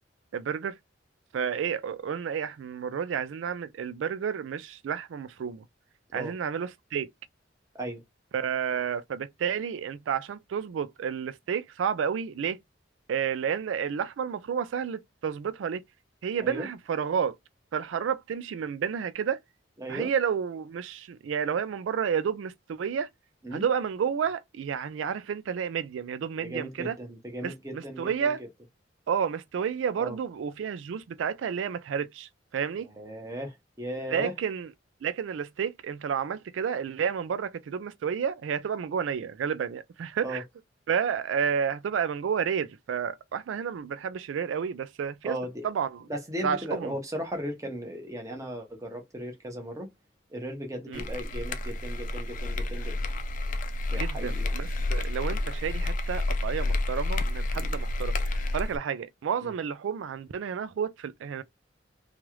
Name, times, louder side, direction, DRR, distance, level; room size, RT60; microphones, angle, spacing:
voice 1, 0.3-0.7 1.3-5.6 6.1-7.1 8.3-12.6 13.1-15.8 16.2-17.4 17.7-19.4 19.9-23.1 23.5-27.0 27.4-28.4 29.1-32.9 34.1-34.7 35.0-40.4 40.9-45.4 45.6-46.0 46.4-46.9 50.9-51.0 53.9-61.4, right 7 dB, 90° right, 0.3 m, -31 dB
voice 2, 19.8-20.1 23.4-23.6 26.4-28.3 30.0-30.2 33.0-34.3 40.2-40.4 45.2-45.6 46.1-49.9 50.3-53.0 53.9-54.5 57.5-57.7 59.4-59.5, equal, 15° right, 1.0 m, -36 dB
sound 1, 50.9-58.8, left 2 dB, 45° left, 0.4 m, -30 dB
3.1 x 2.4 x 3.0 m
head